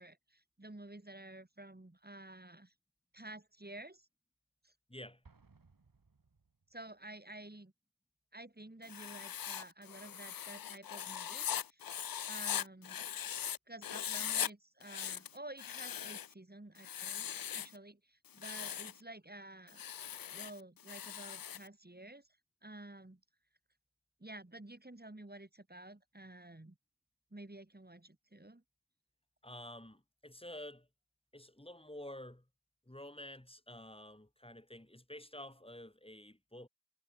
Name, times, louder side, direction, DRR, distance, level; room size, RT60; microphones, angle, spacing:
voice 1, 0.0-2.7 3.1-4.1 4.6-4.7 6.7-7.7 8.3-12.0 12.3-13.0 13.7-22.3 22.6-23.2 24.2-26.8 27.3-28.6, right 1 dB, 30° right, 6.0 m, -51 dB
Explosion, 5.2-7.0, right 4 dB, 75° right, 6.2 m, -65 dB
Writing, 8.8-13.6 13.8-14.5 14.8-16.3 16.8-17.8 18.3-19.0 19.7-21.7, left 9 dB, 90° left, 0.5 m, -40 dB
voice 2, 29.4-30.9 31.3-32.4 32.9-36.7, left 1 dB, 15° left, 4.4 m, -50 dB
wide cardioid pair, 45°, 34 cm